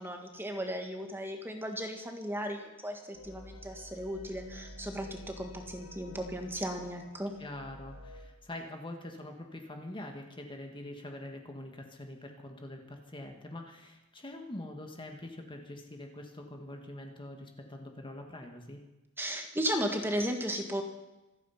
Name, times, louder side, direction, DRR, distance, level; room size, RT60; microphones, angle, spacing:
voice 1, 0.0-7.3 19.2-20.8, equal, 10° right, 4 dB, 1.8 m, -35 dB
sound 1, 3.1-8.2, equal, 80° left, 4.7 m, -49 dB
voice 2, 7.4-18.8, left 1 dB, 20° left, 3 dB, 1.5 m, -44 dB
26.5 x 9.1 x 5.7 m, 1.0 s
head